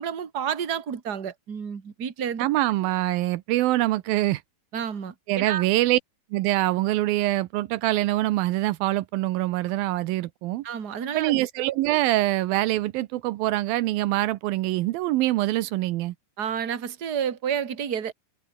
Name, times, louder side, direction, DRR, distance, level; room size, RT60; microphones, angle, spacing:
voice 1, 0.0-2.5 4.7-5.6 10.6-11.3 16.4-18.1, right 8 dB, 30° right, 2.2 m, -30 dB
voice 2, 2.4-4.4 5.3-6.0 6.3-10.6 11.1-16.1, right 16 dB, 80° right, 2.6 m, -24 dB
omnidirectional pair, 4.1 m